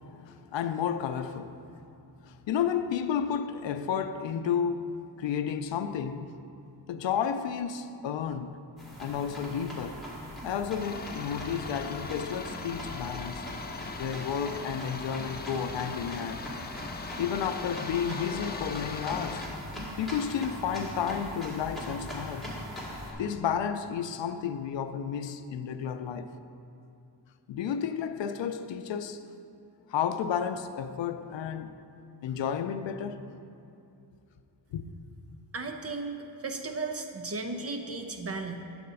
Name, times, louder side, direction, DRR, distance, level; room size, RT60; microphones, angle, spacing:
voice 1, 0.2-1.7 2.2-6.3 6.9-8.6 9.0-10.0 10.4-13.4 14.0-16.5 17.2-19.5 20.0-22.5 23.2-26.3 27.5-29.3 29.9-31.8 32.2-33.2 34.7-34.8, left 8 dB, 85° left, 0.5 m, -32 dB
sound 1, 8.8-23.1, equal, ahead, 1.8 m, -41 dB
sound 2, 10.8-19.5, left 4 dB, 25° left, 0.4 m, -40 dB
voice 2, 35.5-36.1 36.4-38.6, right 3 dB, 35° right, 0.6 m, -35 dB
8.5 x 4.3 x 6.9 m
wide cardioid pair, 130°, 43 cm